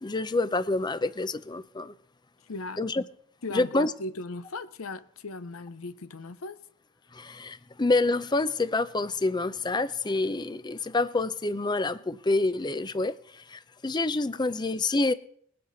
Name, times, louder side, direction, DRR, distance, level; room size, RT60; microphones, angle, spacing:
voice 1, 0.0-1.9 2.8-3.0 3.5-3.9 7.1-15.1, left 2 dB, 20° left, 0.5 m, -27 dB
voice 2, 2.5-2.8 3.4-6.6, left 2 dB, 80° left, 0.8 m, -37 dB
21.0 x 7.7 x 4.0 m
head